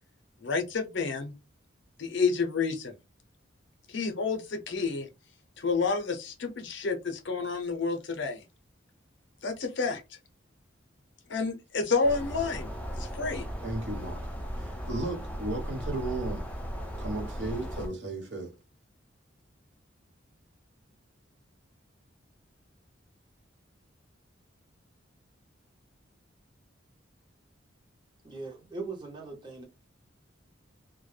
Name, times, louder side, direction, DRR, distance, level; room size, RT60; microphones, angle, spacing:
voice 1, 0.4-1.3 2.0-3.0 3.9-5.1 5.6-8.4 9.4-10.2 11.3-12.7 12.9-13.5, left 4 dB, 65° left, 0.6 m, -30 dB
sound 1, 12.0-17.9, equal, 10° left, 0.3 m, -36 dB
voice 2, 13.6-14.2 14.5-16.4 17.0-18.5, right 2 dB, 60° right, 1.1 m, -35 dB
voice 3, 28.2-29.7, right 3 dB, 25° right, 0.7 m, -40 dB
2.2 x 2.0 x 3.1 m
head